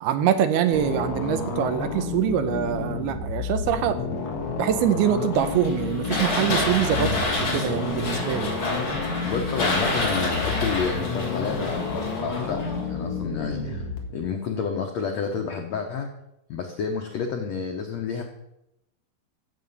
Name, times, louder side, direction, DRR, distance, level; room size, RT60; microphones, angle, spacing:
voice 1, 0.0-4.0 4.6-7.1 7.5-8.6, right 9 dB, 80° right, 9 dB, 2.7 m, -24 dB
sound 1, 0.7-14.0, left 4 dB, 55° left, 2.8 m, -30 dB
sound 2, 5.3-13.0, left 2 dB, 35° left, 2.9 m, -29 dB
voice 2, 9.2-13.8 14.1-16.1 16.5-18.2, left 6 dB, 90° left, 3 dB, 1.5 m, -29 dB
14.5 x 7.9 x 5.6 m, 0.87 s
omnidirectional pair, 4.7 m